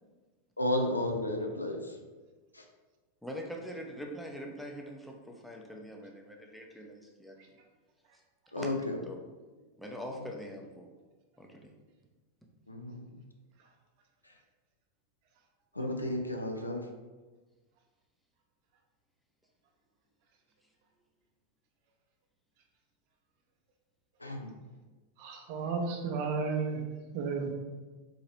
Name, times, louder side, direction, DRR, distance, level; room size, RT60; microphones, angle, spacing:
voice 1, 0.6-2.0 2.5-2.6 8.5-9.0 12.7-13.1 14.2-14.3 15.7-16.9 24.2-24.5, left 1 dB, 80° left, 3 dB, 0.4 m, -33 dB
voice 2, 3.2-7.6 8.5-8.8 9.1-9.2 9.8-10.9 11.4-11.7, equal, ahead, 0 dB, 0.5 m, -43 dB
voice 3, 25.2-26.8 27.1-27.5, right 4 dB, 45° right, 2 dB, 0.6 m, -33 dB
3.8 x 2.9 x 3.0 m, 1.3 s
figure-of-eight pair, 90°, 0 cm